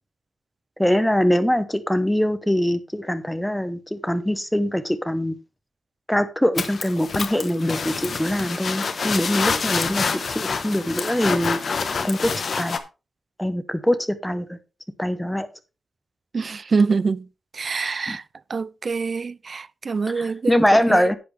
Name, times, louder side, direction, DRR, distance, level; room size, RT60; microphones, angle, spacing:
voice 1, 0.8-5.4 6.1-11.6 12.0-12.3 12.6-12.8 13.4-14.6 15.0-15.5 18.1-18.2 20.2-21.2, equal, 5° left, 0.9 m, -23 dB
sound 1, 6.5-12.8, left 5 dB, 50° left, 1.0 m, -27 dB
voice 2, 16.3-17.3 17.5-18.2 18.5-21.1, right 4 dB, 40° right, 0.4 m, -25 dB
10.5 x 8.6 x 3.2 m
wide cardioid pair, 145°, 0 cm